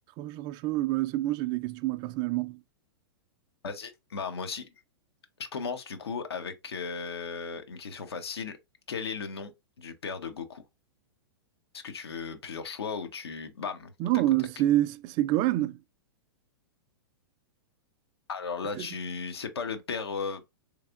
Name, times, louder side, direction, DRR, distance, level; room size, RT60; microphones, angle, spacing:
voice 1, 0.2-2.6 14.0-15.8 18.8-18.9, right 15 dB, 35° right, 0.3 m, -27 dB
voice 2, 3.6-4.7 5.4-8.6 8.9-10.6 11.7-13.9 18.3-20.4, left 5 dB, 85° left, 0.9 m, -36 dB
3.4 x 3.2 x 2.4 m
hypercardioid pair, 120°, 13 cm